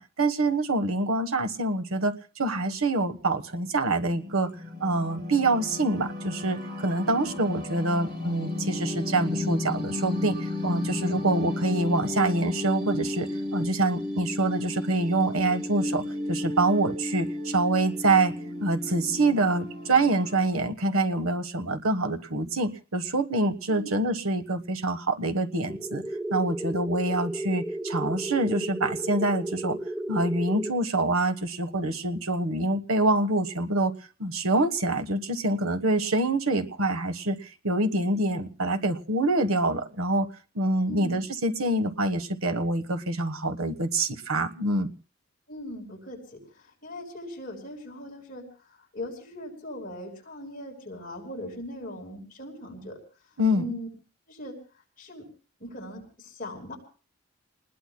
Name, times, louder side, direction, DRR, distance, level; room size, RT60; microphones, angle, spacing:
voice 1, 0.0-4.5 4.8-10.4 10.6-18.3 18.6-26.0 26.3-29.8 30.1-33.9 34.2-37.4 37.6-40.3 40.5-44.9 53.4-53.7, right 2 dB, 85° right, 7 dB, 1.3 m, -26 dB
sound 1, 3.5-20.5, left 2 dB, 45° right, 4.6 m, -34 dB
voice 2, 7.0-7.4 23.7-23.9 40.8-41.2 45.5-53.0 53.5-53.9 54.3-54.6 55.0-55.2 55.6-56.8, left 1 dB, 40° left, 0 dB, 4.7 m, -40 dB
sound 2, 25.7-30.7, right 1 dB, 5° right, 1.0 m, -33 dB
30.0 x 20.0 x 2.2 m, 0.38 s
head